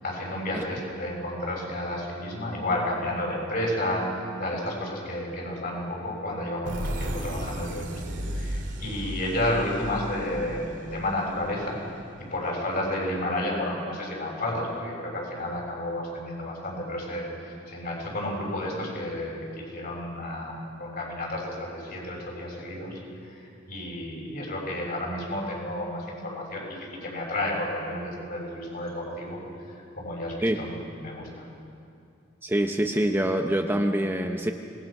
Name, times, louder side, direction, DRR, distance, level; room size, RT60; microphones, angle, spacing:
voice 1, 0.0-4.1 4.4-11.8 12.2-29.4 30.0-31.5, left 1 dB, 50° left, -2 dB, 6.8 m, -31 dB
sound 1, 6.6-12.2, equal, 65° right, 2.5 m, -35 dB
voice 2, 32.4-34.5, right 1 dB, 10° right, 4 dB, 0.8 m, -25 dB
25.0 x 20.0 x 6.1 m, 2.5 s
head